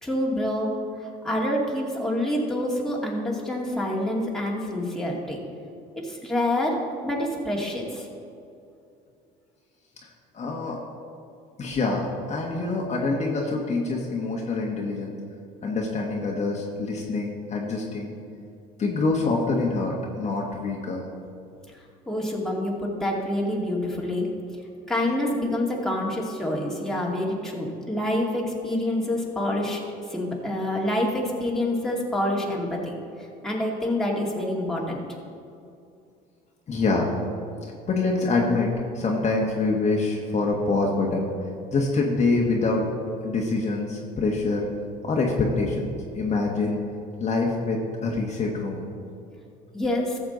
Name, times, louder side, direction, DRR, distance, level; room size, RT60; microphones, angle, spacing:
voice 1, 0.0-0.7 1.0-5.4 6.0-8.1 22.1-24.3 24.9-29.8 30.1-33.0 33.4-35.0 49.7-50.2, left 1 dB, ahead, -3 dB, 2.3 m, -27 dB
voice 2, 10.3-10.8 11.6-15.1 15.6-18.1 18.8-21.0 36.7-37.2 37.9-41.3 41.7-42.9 43.2-44.7 45.0-46.8 47.2-48.8, left 3 dB, 35° left, -1 dB, 1.5 m, -25 dB
14.0 x 7.2 x 4.0 m, 2.5 s
supercardioid pair, 90°, 19 cm